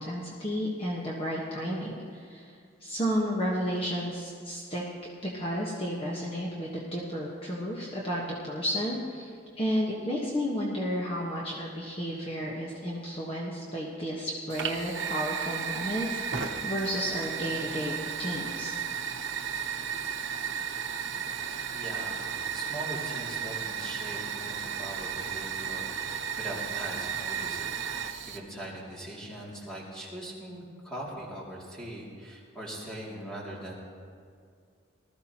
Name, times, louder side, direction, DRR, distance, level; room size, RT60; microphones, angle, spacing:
voice 1, 0.0-4.8 5.2-18.7 20.6-20.8, equal, 30° left, -4 dB, 1.3 m, -32 dB
Fire, 14.5-28.4, right 7 dB, 75° right, 1.0 m, -34 dB
voice 2, 21.7-33.7, right 1 dB, 5° left, -6 dB, 2.6 m, -41 dB
20.0 x 13.5 x 2.9 m, 2.3 s
head